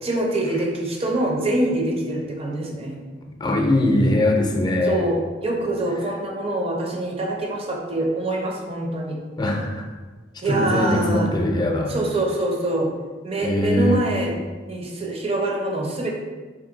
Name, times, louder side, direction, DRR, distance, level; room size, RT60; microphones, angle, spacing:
voice 1, 0.0-2.9 4.8-9.2 10.4-11.3 11.9-12.9 13.2-14.3 14.7-16.1, right 1 dB, 35° right, -1 dB, 0.6 m, -25 dB
voice 2, 3.4-5.0 9.4-9.8 10.5-11.9 13.4-14.0, left 1 dB, 25° left, 1 dB, 0.5 m, -21 dB
3.8 x 2.8 x 3.8 m, 1.3 s
head